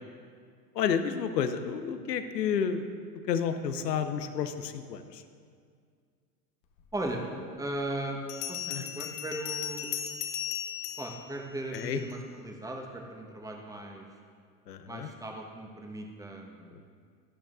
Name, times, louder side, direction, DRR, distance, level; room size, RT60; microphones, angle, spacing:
voice 1, 0.7-2.9 3.3-5.2 8.7-8.8 11.7-12.0 14.7-15.1 16.8-16.9, left 7 dB, 80° left, 10 dB, 0.8 m, -30 dB
voice 2, 7.6-8.2 8.5-9.9 11.0-14.0 14.9-16.8, right 1 dB, 5° right, 1 dB, 1.2 m, -37 dB
Bell, 8.3-12.2, left 10 dB, 40° left, 1.0 m, -37 dB
12.0 x 11.0 x 2.5 m, 2.1 s
hypercardioid pair, 85°, 49 cm